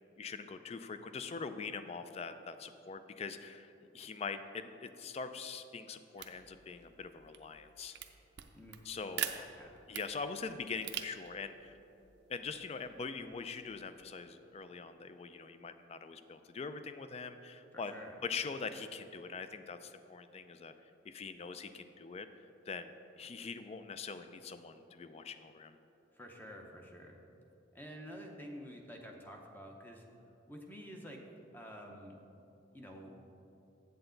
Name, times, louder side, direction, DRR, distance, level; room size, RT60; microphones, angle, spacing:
voice 1, 0.2-8.0 8.8-9.5 9.9-11.8 12.3-17.9 18.2-20.7 21.0-22.9 23.2-25.8, left 5 dB, 30° left, 10 dB, 0.3 m, -43 dB
sound 1, 6.1-14.1, right 10 dB, 55° right, 0.5 m, -46 dB
voice 2, 17.7-18.1 26.1-27.2 27.7-30.0 30.5-31.2 31.5-32.2 32.7-33.1, equal, 10° left, 1 dB, 0.7 m, -49 dB
7.9 x 7.9 x 3.8 m, 2.9 s
head